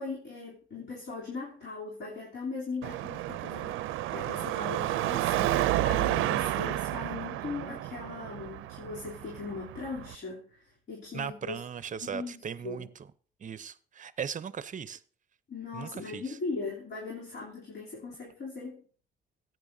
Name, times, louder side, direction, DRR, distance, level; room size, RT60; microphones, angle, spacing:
voice 1, 0.0-11.6 12.0-12.9 15.5-18.8, left 4 dB, 60° left, 3.3 m, -39 dB
Car passing by / Traffic noise roadway noise / Engine, 2.8-10.1, right 15 dB, 90° right, 0.5 m, -31 dB
voice 2, 11.1-12.9 13.4-15.0 15.7-16.4, right 7 dB, 40° right, 0.6 m, -38 dB
15.0 x 9.1 x 2.7 m
cardioid pair, 90°, 20 cm